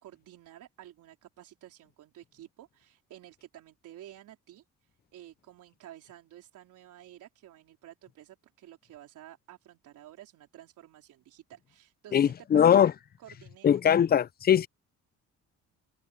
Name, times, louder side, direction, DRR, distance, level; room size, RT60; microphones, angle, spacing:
voice 1, 0.0-12.9 13.2-14.0, right 13 dB, 85° right, 4.0 m, -52 dB
voice 2, 12.1-12.9 13.6-14.7, left 9 dB, 30° left, 0.4 m, -21 dB
open air
cardioid pair, 90°, 30 cm